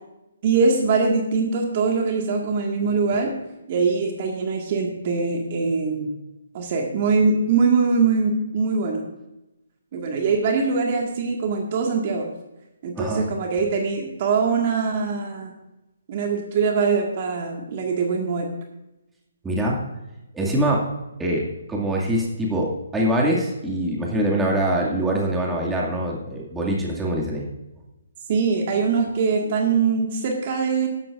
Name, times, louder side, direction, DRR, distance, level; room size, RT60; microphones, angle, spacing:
voice 1, 0.4-3.3 3.7-6.2 6.5-9.1 9.9-12.3 12.8-15.5 16.1-18.5 28.3-30.9, right 4 dB, 40° right, 2 dB, 1.8 m, -22 dB
voice 2, 13.0-13.3 19.4-19.8 20.3-20.9 21.2-27.5, right 1 dB, 10° right, -3 dB, 2.3 m, -24 dB
14.5 x 11.5 x 2.6 m, 0.95 s
figure-of-eight pair, 140°, 0 cm